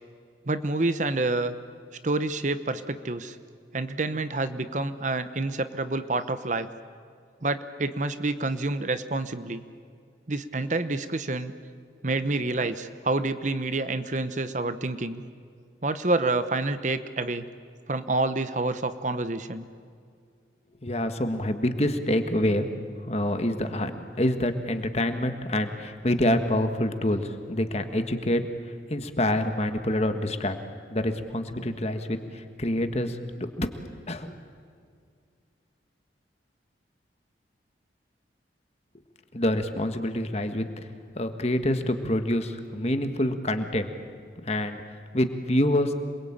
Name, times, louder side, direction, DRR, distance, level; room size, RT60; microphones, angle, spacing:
voice 1, 0.5-1.5 2.0-3.4 3.7-6.7 7.4-9.6 10.3-11.5 12.0-15.2 15.8-17.4 17.9-19.7, right 2 dB, 40° right, 11 dB, 0.9 m, -28 dB
voice 2, 20.8-22.7 23.0-28.4 28.9-30.6 30.9-33.7 34.0-34.3 39.3-40.7 41.1-43.9 44.4-44.8 45.1-45.9, left 1 dB, 35° left, 7 dB, 1.6 m, -26 dB
27.5 x 22.0 x 8.9 m, 2.2 s
head